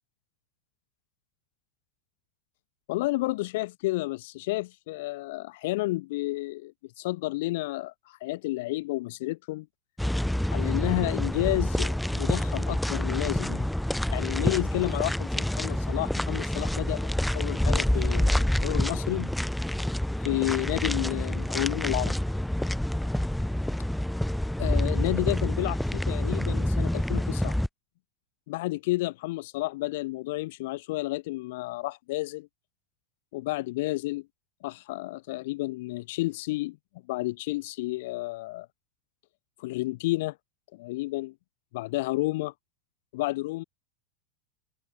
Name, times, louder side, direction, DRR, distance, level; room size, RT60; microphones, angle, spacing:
voice 1, 2.9-9.7 10.5-13.7 14.1-17.1 17.3-19.3 20.2-22.2 24.6-27.6 28.5-32.5 33.3-34.3 34.6-36.8 37.1-38.7 39.6-40.4 40.7-41.3 41.7-42.5 43.1-43.6, left 20 dB, 70° left, 7.0 m, -31 dB
sound 1, 10.0-27.7, left 1 dB, ahead, 7.7 m, -27 dB
supercardioid pair, 120°, 0 cm